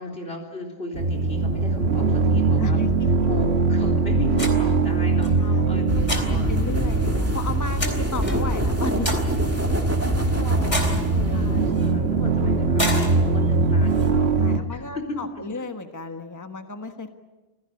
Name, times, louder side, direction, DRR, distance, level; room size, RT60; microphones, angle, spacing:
voice 1, 0.0-2.8 3.3-6.6 10.3-14.3 14.7-15.6, left 2 dB, 70° left, 1 dB, 4.4 m, -36 dB
sound 1, 0.9-14.6, right 3 dB, 85° right, 1.7 m, -22 dB
voice 2, 2.6-3.3 5.4-5.7 6.2-9.1 11.3-11.6 14.4-17.1, left 3 dB, 15° left, 6 dB, 1.3 m, -34 dB
sound 2, 4.3-14.1, left 1 dB, 45° left, 3.7 m, -34 dB
sound 3, 5.9-11.7, right 1 dB, 15° right, 2.0 m, -26 dB
28.0 x 16.0 x 9.7 m, 1.2 s
omnidirectional pair, 1.1 m